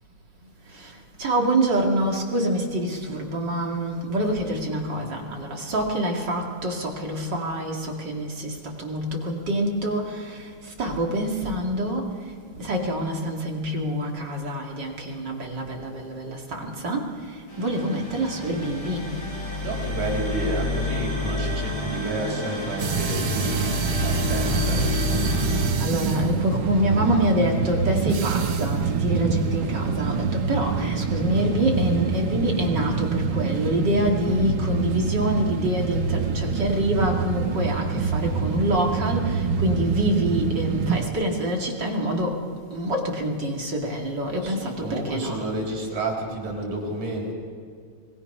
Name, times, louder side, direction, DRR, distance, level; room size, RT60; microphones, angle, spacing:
voice 1, 0.7-12.3 12.6-19.2 25.8-42.4 42.7-45.4, right 1 dB, 35° right, 0 dB, 2.6 m, -26 dB
sound 1, 17.5-25.7, left 2 dB, 30° left, 6.8 m, -29 dB
voice 2, 19.6-24.9 44.4-47.3, right 1 dB, 75° right, -1 dB, 5.7 m, -30 dB
sound 2, 22.8-41.1, right 6 dB, 55° right, 1.5 m, -26 dB
25.0 x 20.0 x 5.5 m, 2.2 s
omnidirectional pair, 3.5 m